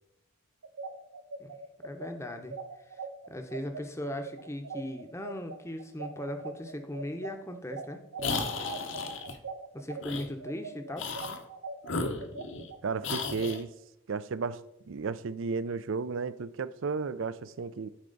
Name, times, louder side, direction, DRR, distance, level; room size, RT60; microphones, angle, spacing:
sound 1, 0.6-10.0 10.4-13.5, right 4 dB, 90° right, 0.9 m, -41 dB
voice 1, 1.8-2.5 2.9-3.0 3.3-8.0 9.7-11.1, left 1 dB, 10° left, 0.7 m, -38 dB
sound 2, 8.2-9.4 10.0-10.3 10.9-11.4 11.8-12.7 13.0-13.6, left 3 dB, 55° left, 0.8 m, -34 dB
voice 2, 12.8-13.7 14.1-17.9, right 4 dB, 60° right, 0.4 m, -33 dB
12.5 x 4.7 x 3.9 m
head